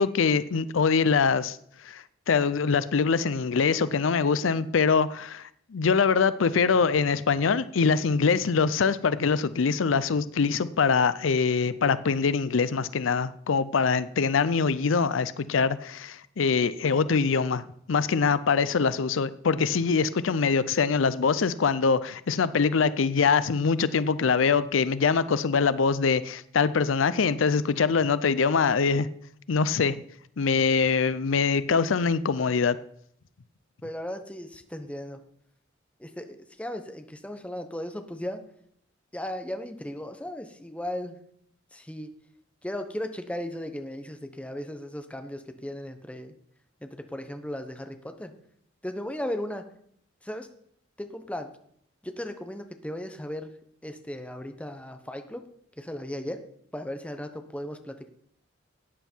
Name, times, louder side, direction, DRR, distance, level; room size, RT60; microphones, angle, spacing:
voice 1, 0.0-1.6 1.9-29.1 29.5-30.0 30.4-32.8, left 5 dB, 90° left, 0.5 m, -24 dB
voice 2, 33.8-35.2 36.0-38.4 39.1-41.2 41.7-42.1 42.6-46.3 46.8-48.3 48.8-49.6 50.2-50.5 51.0-51.5 52.0-53.5 53.8-55.5 55.8-56.4 56.7-58.1, left 1 dB, 5° left, 0.9 m, -36 dB
13.5 x 9.1 x 4.5 m
head